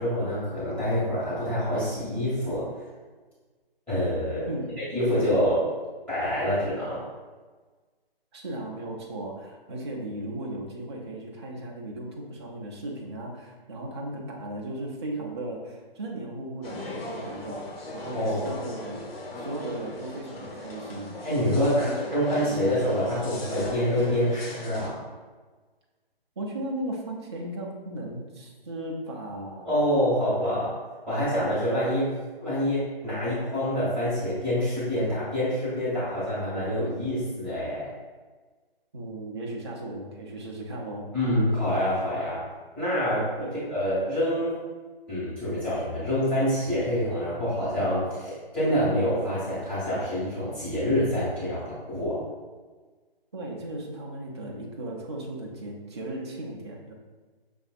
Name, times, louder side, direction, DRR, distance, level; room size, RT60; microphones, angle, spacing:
voice 1, 0.0-2.7 3.9-4.5 4.9-5.7 6.1-7.0 18.1-18.5 21.2-25.0 29.6-30.7 31.1-32.1 32.4-37.9 41.1-42.4 42.8-43.3 43.7-44.6 45.1-52.2, equal, 5° left, -13 dB, 1.3 m, -26 dB
voice 2, 4.4-4.8 8.3-19.1 19.4-21.1 21.5-21.9 26.4-29.8 38.9-41.1 43.4-43.6 53.3-56.9, right 1 dB, 30° right, -1 dB, 0.5 m, -36 dB
sound 1, 16.6-24.9, left 1 dB, 75° left, 0.9 m, -38 dB
6.0 x 2.6 x 2.4 m, 1.4 s
figure-of-eight pair, 150°, 30 cm